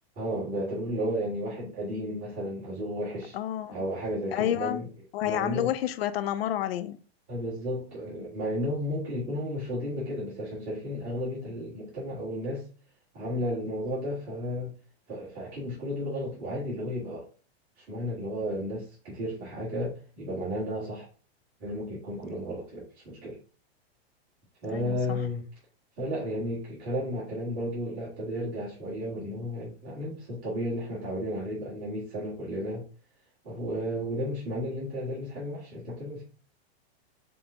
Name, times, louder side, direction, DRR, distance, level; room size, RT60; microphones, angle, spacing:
voice 1, 0.2-3.4 3.7-4.9 5.2-5.7 7.3-12.6 13.1-14.7 15.1-17.2 17.8-21.1 21.6-23.4 24.6-25.4 26.0-32.8 33.4-36.2, equal, 30° right, 1.8 m, -33 dB
voice 2, 3.3-3.8 4.3-4.8 5.1-7.0 24.7-25.2, left 11 dB, 65° left, 0.6 m, -29 dB
5.2 x 2.3 x 3.8 m
supercardioid pair, 160°, 32 cm